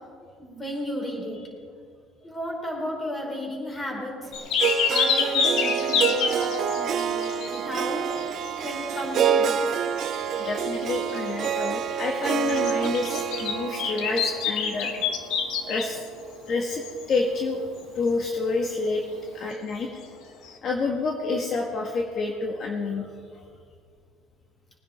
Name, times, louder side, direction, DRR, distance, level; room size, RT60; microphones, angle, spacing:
voice 1, 0.4-1.4 2.2-4.3 4.9-8.1 8.6-9.9, equal, 20° left, -1 dB, 4.6 m, -33 dB
sound 1, 4.3-7.8 8.1-9.0 9.4-9.5 9.7-16.1 16.7-17.0 20.4-20.5, left 6 dB, 70° left, 1.6 m, -28 dB
Harp, 4.6-16.7, right 8 dB, 55° right, 0.7 m, -28 dB
voice 2, 10.3-14.9 15.6-16.0 16.5-19.0 19.3-19.9 20.6-23.1 23.3-23.4, left 3 dB, 50° left, 0 dB, 1.6 m, -28 dB
21.0 x 9.8 x 4.4 m, 2.1 s
supercardioid pair, 95°, 0 cm